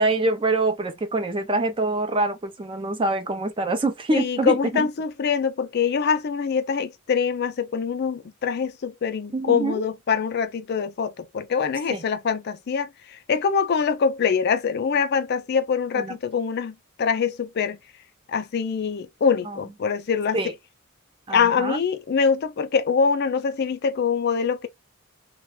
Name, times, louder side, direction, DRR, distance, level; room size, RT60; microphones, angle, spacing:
voice 1, 0.0-4.9 9.3-9.8 11.9-12.0 15.9-16.2 19.5-19.6 20.3-20.5 21.3-21.8, right 2 dB, 25° right, 0.4 m, -25 dB
voice 2, 4.1-17.8 18.3-20.4 21.3-24.7, left 6 dB, 50° left, 0.4 m, -24 dB
2.3 x 2.1 x 2.9 m
head